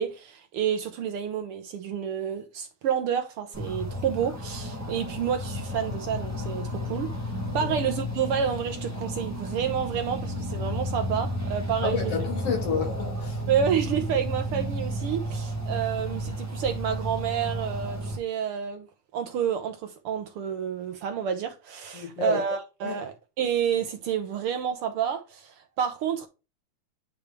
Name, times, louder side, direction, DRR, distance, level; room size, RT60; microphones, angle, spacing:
voice 1, 0.0-7.1 7.5-12.0 13.5-18.9 19.1-26.3, right 8 dB, 75° right, 1.3 m, -29 dB
sound 1, 3.5-18.2, equal, 10° right, 0.9 m, -32 dB
voice 2, 11.8-13.4 21.9-22.4 22.8-23.0, left 6 dB, 60° left, 2.2 m, -30 dB
9.7 x 3.4 x 3.3 m
omnidirectional pair, 3.4 m